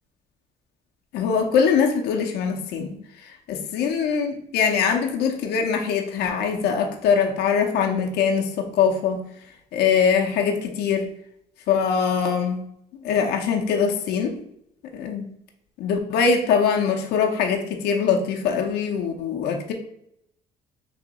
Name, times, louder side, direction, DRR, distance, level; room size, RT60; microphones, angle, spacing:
voice 1, 1.1-9.2 9.7-11.1 11.7-12.6 12.9-14.3 14.9-15.2 15.8-19.7, left 6 dB, 75° left, 2 dB, 0.6 m, -22 dB
3.4 x 2.7 x 3.9 m, 0.75 s
cardioid pair, 110°, 17 cm